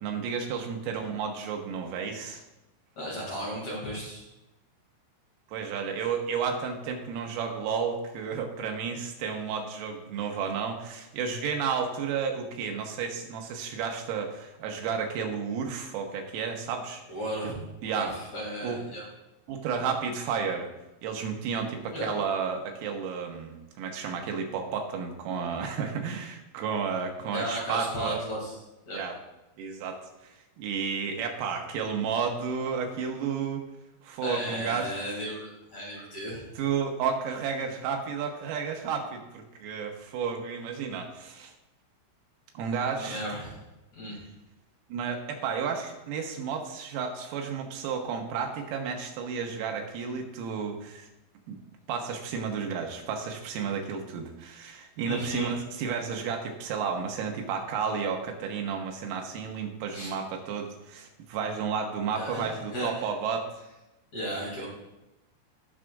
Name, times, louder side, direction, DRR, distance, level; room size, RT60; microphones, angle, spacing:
voice 1, 0.0-2.4 5.5-17.0 17.4-17.5 17.8-18.2 18.6-18.8 19.5-20.7 21.0-28.2 28.9-29.2 29.6-33.6 34.0-34.9 36.6-41.5 42.6-43.2 44.9-51.1 51.5-51.6 51.9-63.5, right 6 dB, 85° right, 3 dB, 3.6 m, -32 dB
voice 2, 3.0-4.2 17.1-17.6 17.9-19.0 21.9-22.1 27.3-28.5 28.9-29.0 34.2-36.4 43.0-43.6 43.9-44.2 55.0-55.5 59.9-60.1 62.1-63.0 64.1-64.7, equal, 40° left, -5 dB, 3.1 m, -35 dB
18.5 x 6.2 x 2.5 m, 0.99 s
omnidirectional pair, 6.0 m